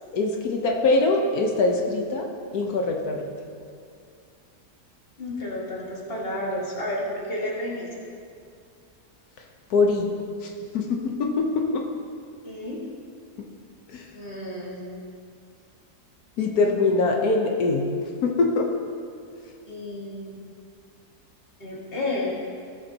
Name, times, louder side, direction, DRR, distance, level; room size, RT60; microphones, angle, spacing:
voice 1, 0.1-2.3 2.5-3.2 9.7-10.1 10.4-11.7 13.9-14.0 16.4-17.9 18.2-18.7, left 3 dB, 70° left, 1 dB, 1.3 m, -23 dB
voice 2, 5.2-7.9 12.4-12.8 14.1-15.0 16.9-17.2 19.7-20.4 21.6-22.3, left 1 dB, 35° left, -4 dB, 2.0 m, -31 dB
17.0 x 7.0 x 2.8 m, 2.3 s
omnidirectional pair, 1.7 m